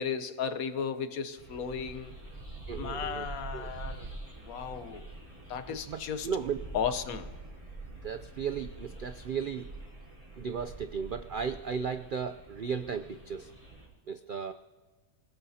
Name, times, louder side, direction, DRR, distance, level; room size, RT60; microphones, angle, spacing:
voice 1, 0.0-2.1 2.8-4.1 4.4-5.1 5.5-6.3 6.7-7.3, left 7 dB, 75° left, 11 dB, 1.3 m, -35 dB
sound 1, 1.4-13.9, right 2 dB, 25° right, 4.2 m, -45 dB
voice 2, 2.7-3.2 3.5-3.7 5.7-6.6 8.0-9.7 10.4-13.5 14.1-14.5, right 6 dB, 70° right, 9 dB, 0.4 m, -35 dB
27.0 x 17.5 x 2.8 m, 1.3 s
omnidirectional pair, 1.5 m